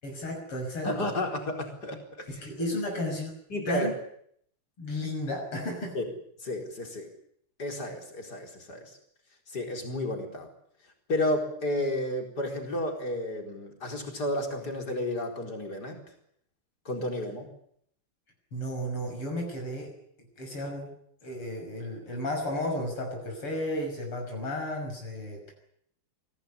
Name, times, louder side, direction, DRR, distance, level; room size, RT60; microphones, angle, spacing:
voice 1, 0.0-1.1 2.3-3.3 3.7-3.9 4.8-6.0 18.5-19.9 20.4-20.9 21.2-25.5, left 1 dB, 80° left, 1 dB, 7.1 m, -33 dB
voice 2, 0.8-2.9 3.5-3.9 5.9-6.0 6.4-7.1 7.6-9.0 9.5-10.5 11.1-16.0 16.8-17.5, left 1 dB, 45° left, 3 dB, 5.0 m, -32 dB
24.0 x 17.5 x 9.9 m, 0.68 s
omnidirectional pair, 2.4 m